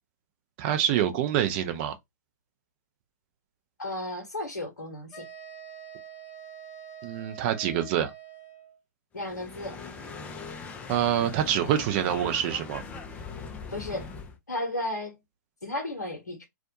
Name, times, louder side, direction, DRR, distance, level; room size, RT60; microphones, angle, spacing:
voice 1, 0.6-1.9 7.0-8.1 10.9-12.8, right 10 dB, 35° right, 0.5 m, -26 dB
voice 2, 3.8-5.3 9.1-9.8 13.7-14.1 14.5-15.2 15.6-16.5, left 1 dB, 75° left, 0.8 m, -34 dB
sound 1, 5.1-8.8, right 8 dB, 30° left, 0.8 m, -45 dB
sound 2, 9.2-14.4, left 4 dB, 15° left, 0.4 m, -41 dB
2.4 x 2.1 x 2.8 m
figure-of-eight pair, 115°, 10 cm